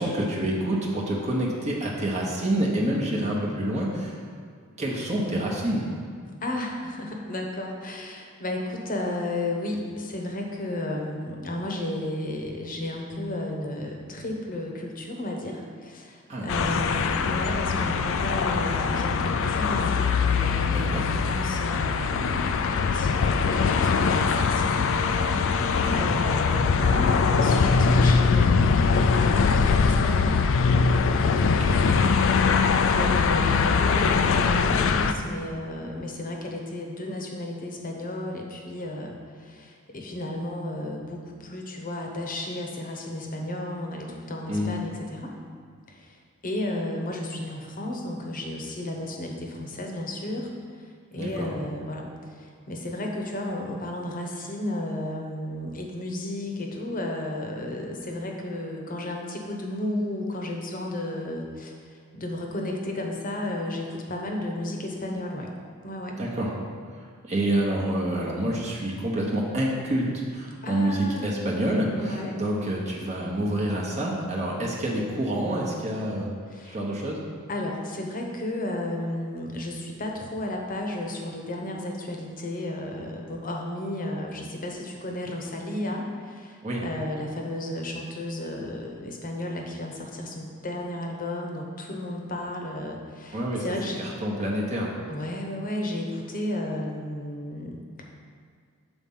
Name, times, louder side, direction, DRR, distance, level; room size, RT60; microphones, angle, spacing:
voice 1, 0.0-4.2 4.8-5.9 16.3-16.7 20.7-21.0 25.8-26.0 31.6-31.8 44.5-44.7 51.2-51.5 66.2-66.5 67.2-76.3 76.6-77.2 86.6-86.8 93.3-93.6 94.0-94.9, right 1 dB, 30° right, -3 dB, 0.9 m, -27 dB
voice 2, 6.4-30.5 31.3-45.3 45.9-46.2 46.4-65.5 65.8-66.2 70.6-71.3 72.0-72.4 76.5-76.8 77.5-94.0 95.1-98.0, left 1 dB, 40° left, 1 dB, 0.9 m, -33 dB
sound 1, 16.5-35.1, left 5 dB, 60° left, 0.4 m, -22 dB
7.2 x 4.2 x 5.5 m, 2.1 s
head